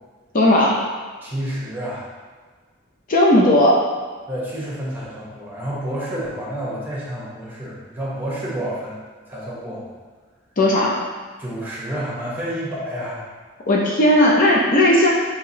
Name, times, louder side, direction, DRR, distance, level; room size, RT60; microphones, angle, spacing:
voice 1, 0.3-0.8 3.1-3.8 10.6-11.0 13.7-15.1, left 1 dB, 40° left, -3 dB, 0.6 m, -15 dB
voice 2, 1.2-2.1 4.3-9.0 9.3-9.9 11.4-13.2, right 1 dB, 10° right, -7 dB, 1.0 m, -29 dB
5.6 x 2.9 x 2.8 m, 1.5 s
head